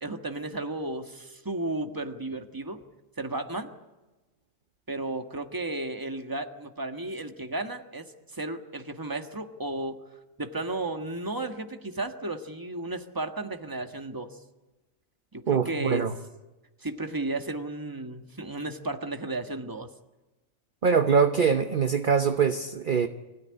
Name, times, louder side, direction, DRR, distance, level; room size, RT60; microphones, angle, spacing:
voice 1, 0.0-2.8 3.2-3.7 4.9-10.0 10.4-14.4 15.3-16.0 16.8-19.9, right 2 dB, 15° right, 6 dB, 1.5 m, -34 dB
voice 2, 15.5-16.1 20.8-23.1, right 6 dB, 45° right, 7 dB, 1.0 m, -23 dB
24.0 x 16.5 x 9.8 m, 1.1 s
omnidirectional pair, 1.4 m